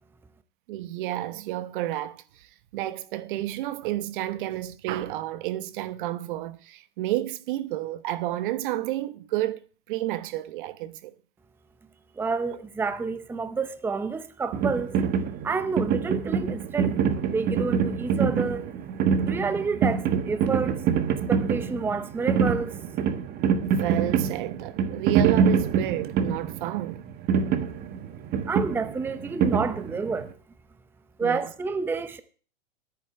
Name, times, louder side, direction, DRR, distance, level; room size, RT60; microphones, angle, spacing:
voice 1, 0.7-2.5 2.7-11.1 23.6-27.0 31.2-31.4, right 15 dB, 55° right, 1.2 m, -31 dB
voice 2, 12.2-15.0 15.4-18.7 19.2-20.8 21.3-22.7 28.5-30.3 31.2-32.2, right 4 dB, 5° right, 0.7 m, -29 dB
sound 1, 14.5-30.3, right 7 dB, 35° right, 1.4 m, -25 dB
10.5 x 9.5 x 7.7 m
hypercardioid pair, 130°, 30 cm